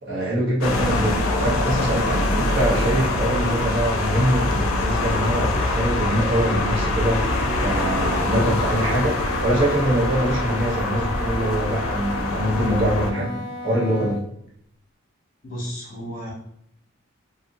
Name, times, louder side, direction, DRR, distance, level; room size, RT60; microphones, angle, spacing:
voice 1, 0.0-14.2, right 1 dB, 55° right, -7 dB, 1.2 m, -24 dB
sound 1, 0.6-13.1, left 2 dB, 85° left, 0.5 m, -24 dB
Wind instrument woodwind instrument, 7.1-14.3, right 1 dB, 15° right, 0.5 m, -34 dB
voice 2, 15.4-16.3, equal, 40° left, -5 dB, 1.1 m, -33 dB
2.7 x 2.6 x 2.6 m, 0.71 s
head